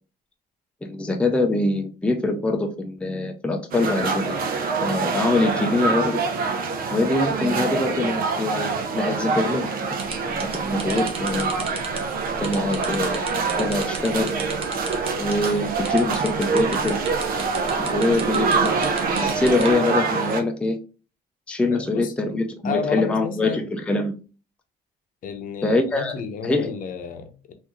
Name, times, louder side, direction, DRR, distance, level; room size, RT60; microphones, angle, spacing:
voice 1, 0.8-4.4 4.8-6.2 6.9-9.7 10.3-11.5 12.4-13.2 13.6-14.3 15.2-17.0 17.6-18.7 19.2-20.8 21.5-24.1 25.6-26.1 26.4-26.8, left 2 dB, 5° left, 0.5 m, -24 dB
sound 1, 3.7-20.4, right 4 dB, 60° right, 0.6 m, -25 dB
sound 2, 10.0-19.7, right 3 dB, 35° right, 0.9 m, -34 dB
voice 2, 21.7-22.1 22.6-23.6 25.2-27.5, left 6 dB, 55° left, 0.7 m, -31 dB
3.5 x 2.7 x 3.0 m
cardioid pair, 110°, 17 cm